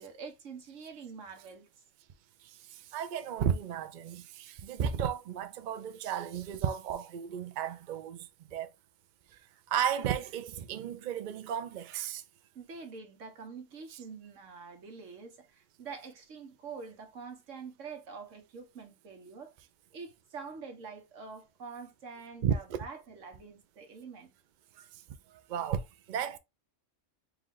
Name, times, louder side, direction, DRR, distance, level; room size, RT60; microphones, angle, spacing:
voice 1, 0.0-1.7 12.5-19.5 19.9-24.3, right 5 dB, 85° right, 1.5 m, -46 dB
voice 2, 2.9-8.2 8.5-8.7 9.7-12.2 22.4-22.8 25.5-25.8 26.1-26.4, right 8 dB, 55° right, 0.6 m, -33 dB
4.6 x 2.4 x 3.7 m
omnidirectional pair, 1.3 m